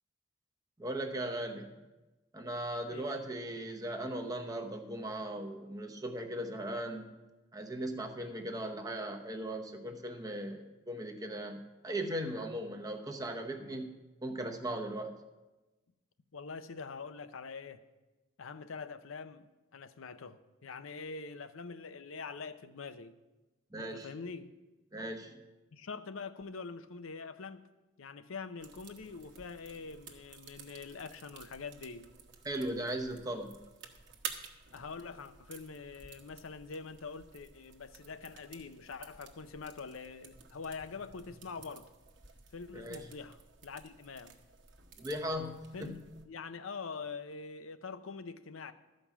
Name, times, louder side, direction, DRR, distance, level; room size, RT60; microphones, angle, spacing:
voice 1, 0.8-1.8 2.3-7.1 7.5-15.1 23.7-24.1 24.9-25.4 32.4-33.6 42.7-43.1 45.0-46.0, right 1 dB, 20° right, 0.8 m, -38 dB
voice 2, 2.9-3.2 16.3-17.8 18.4-23.2 23.8-24.5 25.7-27.7 28.0-32.1 34.7-41.9 42.5-44.4 45.7-46.0 46.3-48.7, left 4 dB, 90° left, 0.6 m, -44 dB
sound 1, 28.6-46.2, right 6 dB, 65° right, 1.1 m, -52 dB
13.0 x 5.2 x 7.2 m
head